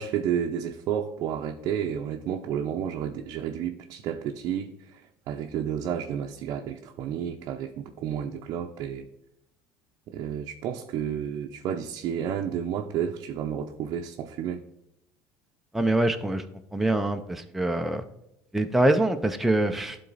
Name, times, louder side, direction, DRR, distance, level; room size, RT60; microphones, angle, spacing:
voice 1, 0.0-9.1 10.1-14.6, right 8 dB, 55° right, 3 dB, 0.6 m, -31 dB
voice 2, 15.7-16.4 16.7-18.0 18.5-20.0, right 1 dB, 5° right, 5 dB, 0.5 m, -24 dB
11.5 x 3.9 x 4.0 m, 0.87 s
supercardioid pair, 115°, 7 cm